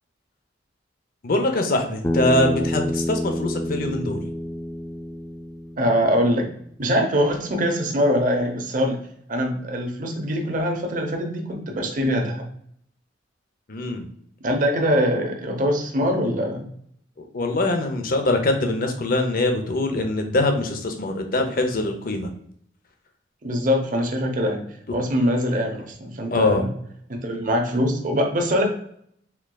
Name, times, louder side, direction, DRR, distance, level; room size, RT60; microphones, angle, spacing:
voice 1, 1.2-4.2 13.7-14.1 17.3-22.3 26.3-26.7, left 2 dB, 50° left, 5 dB, 0.6 m, -23 dB
Bass guitar, 2.0-6.4, equal, 10° left, 0.4 m, -28 dB
voice 2, 5.8-6.5 6.8-9.0 9.3-12.5 14.4-16.7 23.4-24.7 24.9-26.7 27.2-28.6, equal, 45° right, 3 dB, 0.8 m, -23 dB
4.5 x 3.6 x 2.2 m, 0.68 s
head